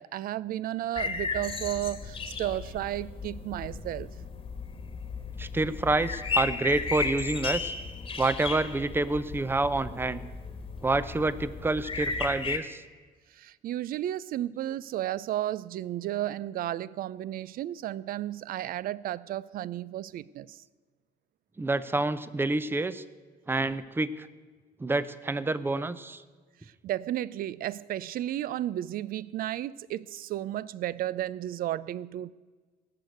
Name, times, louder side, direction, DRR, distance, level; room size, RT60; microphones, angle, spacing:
voice 1, 0.0-4.1 13.3-20.6 26.8-32.3, right 13 dB, 60° right, 0.4 m, -33 dB
sound 1, 1.0-12.6, left 4 dB, 30° left, 1.4 m, -35 dB
voice 2, 5.4-7.7 8.2-10.2 10.8-12.8 21.6-23.0 23.5-24.3 24.8-26.2, right 2 dB, 15° right, 0.6 m, -28 dB
18.0 x 6.7 x 7.8 m
cardioid pair, 110°, 17 cm